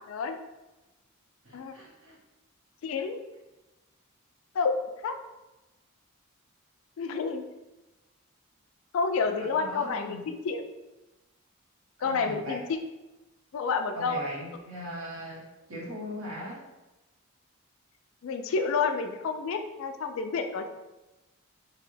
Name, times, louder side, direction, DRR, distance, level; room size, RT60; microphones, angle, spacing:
voice 1, 0.1-0.4 1.5-1.7 2.8-3.2 4.5-4.8 5.0-5.2 7.0-7.4 8.9-10.6 12.0-12.6 13.5-14.2 18.2-20.7, left 5 dB, 65° left, 7 dB, 0.3 m, -29 dB
voice 2, 1.4-2.2 9.2-10.3 12.0-12.6 13.9-16.7, equal, 65° right, -4 dB, 1.0 m, -39 dB
3.1 x 2.7 x 2.6 m, 1.0 s
head